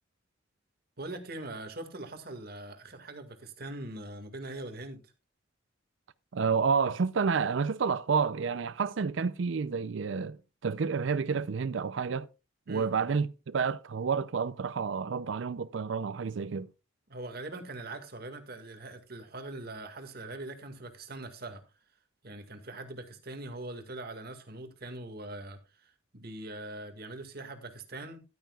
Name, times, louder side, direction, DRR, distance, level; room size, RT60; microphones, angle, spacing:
voice 1, 1.0-5.1 12.7-12.9 17.1-21.6 22.2-28.2, right 2 dB, 50° right, 1.9 m, -42 dB
voice 2, 6.3-10.4 10.6-12.3 12.7-16.7, right 5 dB, 70° right, 0.5 m, -29 dB
14.0 x 12.0 x 2.3 m
head